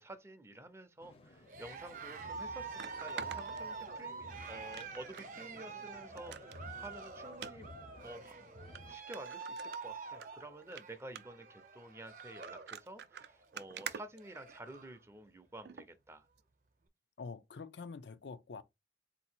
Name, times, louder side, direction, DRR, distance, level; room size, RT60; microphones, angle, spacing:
voice 1, 0.0-7.7 8.0-8.3 8.8-16.2, right 1 dB, 15° right, 0.5 m, -50 dB
sound 1, 1.0-9.0, left 2 dB, 35° left, 0.6 m, -55 dB
Cheering, 1.4-12.7 13.0-13.4 13.9-14.0 14.1-15.0, right 4 dB, 50° right, 0.7 m, -46 dB
sound 2, 1.7-1.8 2.8-4.2 4.7-5.3 5.7-5.8 6.2-6.6 7.3-7.5 8.3-8.4 8.8-8.9 9.1-10.3 10.6-10.8 11.2-11.5 12.2-14.9 15.7-15.9 16.4-16.5, right 7 dB, 70° right, 0.4 m, -47 dB
voice 2, 17.2-18.6, left 4 dB, 80° left, 0.5 m, -46 dB
4.0 x 2.8 x 4.3 m
head